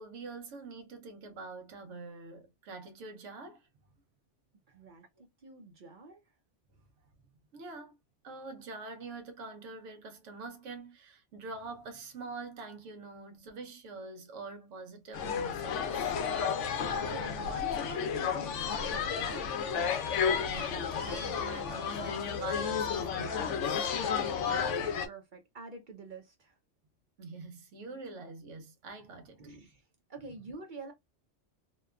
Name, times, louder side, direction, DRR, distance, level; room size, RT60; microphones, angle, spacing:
voice 1, 0.0-3.7 7.5-7.9 8.2-16.1 20.3-23.9 27.2-29.5, right 3 dB, 90° right, 1.1 m, -45 dB
voice 2, 4.7-6.2 16.9-19.6 24.5-26.6 29.4-29.8 30.1-30.9, right 3 dB, 50° right, 0.7 m, -46 dB
sound 1, 15.1-25.1, left 7 dB, 80° left, 0.9 m, -32 dB
2.9 x 2.2 x 2.2 m
omnidirectional pair, 1.2 m